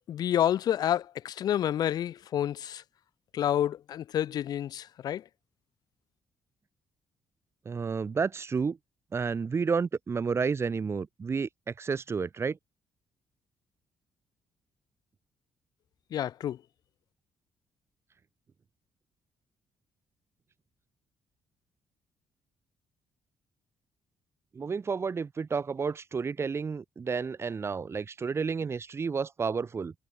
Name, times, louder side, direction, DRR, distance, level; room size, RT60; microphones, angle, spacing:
voice 1, 0.1-2.8 3.3-5.2 16.1-16.6, left 10 dB, 70° left, 3.1 m, -29 dB
voice 2, 7.7-8.8 9.1-12.6 24.5-29.9, right 5 dB, 40° right, 6.9 m, -31 dB
cardioid pair, 90°, 7 cm